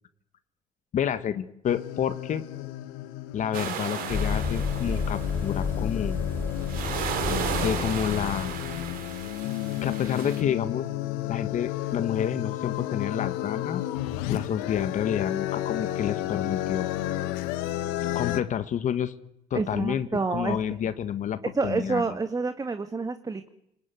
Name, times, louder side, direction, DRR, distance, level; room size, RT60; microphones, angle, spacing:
voice 1, 0.9-2.4 3.3-6.2 7.3-8.5 9.8-10.9 11.3-13.8 14.3-16.9 18.1-19.1 19.5-22.0, left 9 dB, 50° left, 11 dB, 1.6 m, -29 dB
sound 1, 1.7-18.4, left 15 dB, 90° left, 1.6 m, -32 dB
sound 2, 3.5-5.7 6.3-10.4, right 8 dB, 70° right, 4.1 m, -34 dB
sound 3, 4.1-9.3, left 4 dB, 10° left, 1.3 m, -32 dB
voice 2, 19.5-20.6 21.5-23.5, right 4 dB, 25° right, 8 dB, 1.8 m, -28 dB
29.5 x 20.0 x 9.4 m, 0.79 s
supercardioid pair, 85°, 16 cm